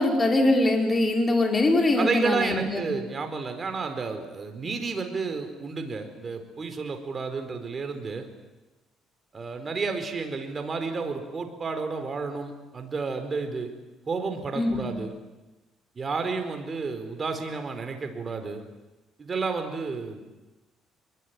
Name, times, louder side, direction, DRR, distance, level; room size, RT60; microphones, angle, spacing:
voice 1, 0.0-2.9 14.6-14.8, left 2 dB, 25° left, 2 dB, 5.1 m, -22 dB
voice 2, 2.0-8.3 9.3-13.7 14.1-15.1 15.9-18.6 19.2-20.2, right 4 dB, 30° right, 6 dB, 4.4 m, -31 dB
24.5 x 22.5 x 9.6 m, 1.1 s
cardioid pair, 110°, 0 cm